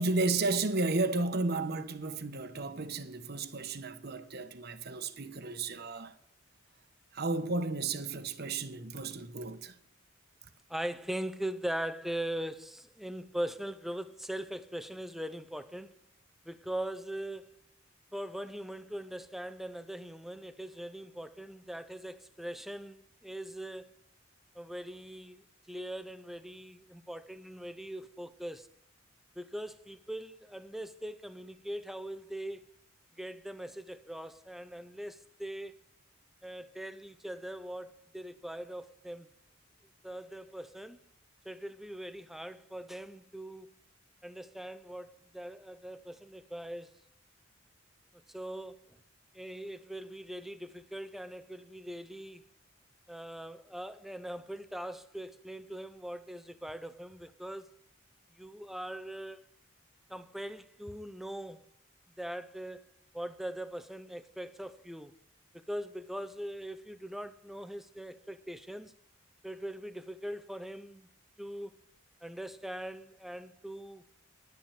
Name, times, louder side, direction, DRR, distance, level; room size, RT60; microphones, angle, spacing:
voice 1, 0.0-6.1 7.1-9.8, right 3 dB, 50° right, 1.0 m, -33 dB
voice 2, 10.7-15.9 16.4-17.5 18.1-23.9 24.5-28.7 29.4-32.7 33.2-35.7 36.4-39.3 40.0-41.0 41.4-43.7 44.2-46.9 48.3-48.8 49.3-52.4 53.1-57.7 58.4-59.4 60.1-61.6 62.2-62.8 63.1-65.1 65.5-68.9 69.4-71.1 71.4-71.8 72.2-74.0, right 1 dB, ahead, 0.6 m, -41 dB
10.5 x 10.5 x 7.1 m
head